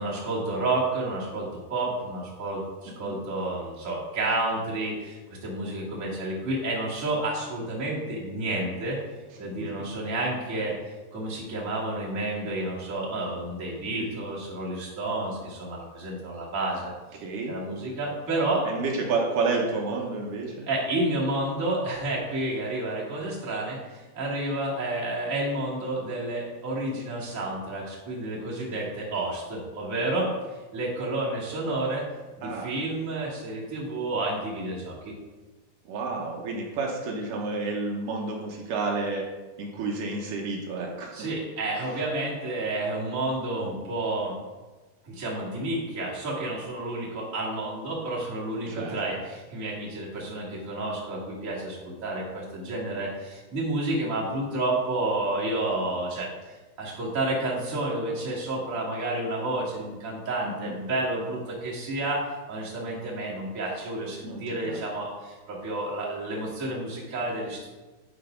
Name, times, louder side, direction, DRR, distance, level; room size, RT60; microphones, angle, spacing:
voice 1, 0.0-9.0 9.4-10.7 11.1-16.9 17.5-18.6 20.7-32.0 32.4-35.1 41.1-44.3 45.0-62.2 62.5-67.7, right 2 dB, 30° right, -6 dB, 1.4 m, -30 dB
voice 2, 17.2-17.5 18.6-20.7 32.4-32.8 35.9-39.3 39.6-41.3 41.8-41.9 48.7-49.0 60.4-60.8 64.2-64.8, right 3 dB, 75° right, -1 dB, 2.0 m, -30 dB
10.0 x 4.0 x 5.1 m, 1.2 s
omnidirectional pair, 4.9 m